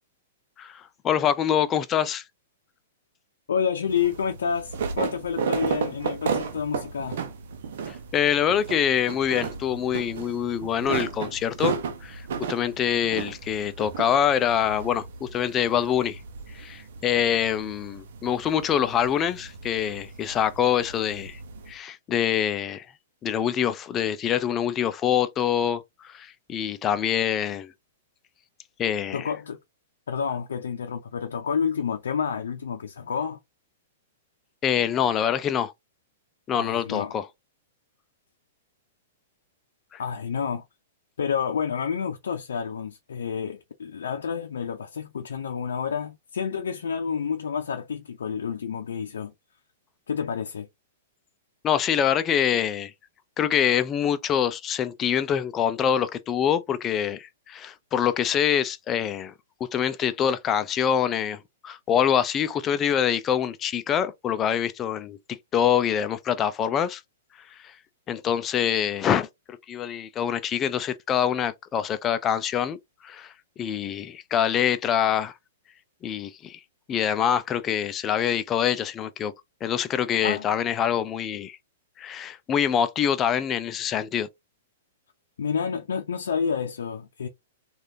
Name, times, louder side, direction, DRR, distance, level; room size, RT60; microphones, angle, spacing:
voice 1, 0.6-2.2 7.9-16.2 16.5-21.4 21.7-22.8 23.2-27.7 28.8-29.3 34.6-35.7 36.5-37.3 39.9-40.0 51.6-52.9 53.4-59.3 59.7-65.2 65.5-67.0 67.5-67.7 68.1-72.8 73.0-75.3 76.0-76.6 76.9-79.3 79.6-81.6 82.0-84.3, left 9 dB, 25° left, 0.5 m, -25 dB
voice 2, 3.5-7.2 29.1-29.6 30.1-33.4 36.5-37.1 40.0-40.6 41.2-49.3 50.1-50.7 80.2-80.5 85.4-87.3, left 6 dB, 85° left, 0.5 m, -29 dB
sound 1, 3.9-21.7, right 6 dB, 70° right, 0.7 m, -34 dB
3.3 x 2.5 x 2.7 m
hypercardioid pair, 130°, 0 cm